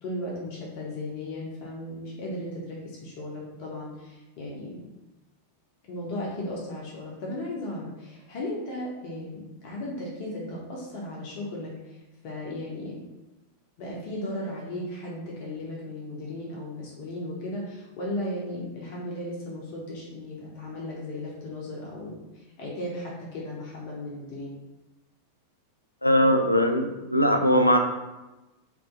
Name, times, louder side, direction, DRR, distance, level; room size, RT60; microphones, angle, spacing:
voice 1, 0.0-4.8 5.8-12.0 12.2-13.0 13.8-24.6, left 1 dB, 45° left, -4 dB, 0.8 m, -36 dB
voice 2, 26.0-27.8, equal, 85° left, 5 dB, 0.3 m, -20 dB
2.6 x 2.6 x 3.7 m, 1.1 s
figure-of-eight pair, 90°, 0 cm